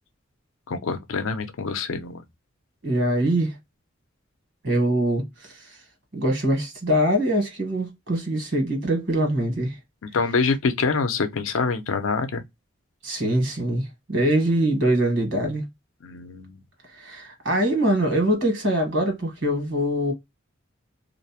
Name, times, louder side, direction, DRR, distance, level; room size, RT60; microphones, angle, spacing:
voice 1, 0.7-2.2 10.0-12.4 16.0-16.6, left 4 dB, 90° left, 0.5 m, -25 dB
voice 2, 2.8-3.6 4.6-5.8 6.1-9.8 13.0-15.7 16.9-20.1, right 1 dB, 70° right, 1.3 m, -23 dB
2.5 x 2.0 x 2.8 m
head